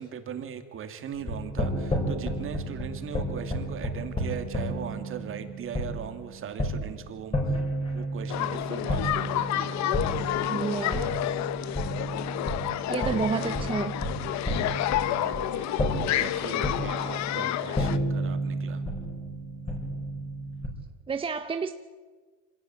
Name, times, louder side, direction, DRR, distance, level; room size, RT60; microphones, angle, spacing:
voice 1, 0.0-7.6 7.9-9.7 12.9-13.7 15.1-18.8, right 8 dB, 35° right, 7 dB, 2.4 m, -39 dB
sound 1, 1.1-20.7, right 1 dB, 15° left, 5.0 m, -32 dB
sound 2, 8.3-18.0, left 13 dB, 50° left, 1.0 m, -29 dB
voice 2, 10.5-11.4 12.9-13.9 21.1-21.7, right 5 dB, 15° right, 8 dB, 0.7 m, -30 dB
25.5 x 17.0 x 9.5 m, 1.5 s
cardioid pair, 145°, 36 cm